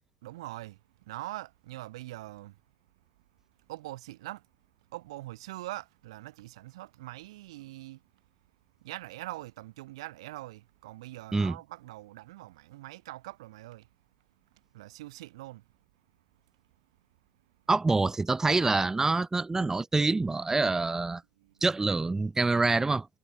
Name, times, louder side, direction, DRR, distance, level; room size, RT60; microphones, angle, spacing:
voice 1, 0.2-2.6 3.7-4.5 4.9-8.2 8.8-13.9 14.5-15.7 21.4-21.6, right 17 dB, 70° right, 2.4 m, -43 dB
voice 2, 17.7-21.2 21.6-23.1, right 3 dB, 15° right, 0.7 m, -26 dB
figure-of-eight pair, 60°, 3 cm